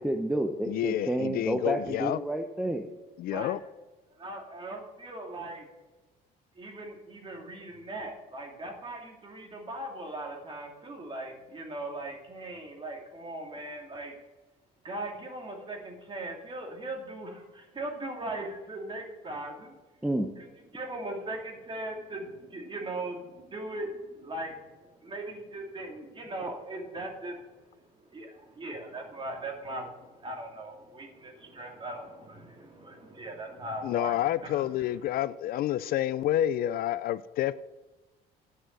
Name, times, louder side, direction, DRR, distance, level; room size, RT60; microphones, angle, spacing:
voice 1, 0.0-2.8 20.0-20.3, right 1 dB, 5° right, 0.7 m, -29 dB
voice 2, 0.7-2.2 3.2-3.6 33.8-37.5, left 12 dB, 60° left, 0.4 m, -29 dB
voice 3, 4.2-5.6 6.6-14.2 14.8-19.8 20.7-27.4 28.1-34.6, right 1 dB, 30° right, 2.7 m, -39 dB
9.3 x 6.3 x 7.5 m
cardioid pair, 110°, 17 cm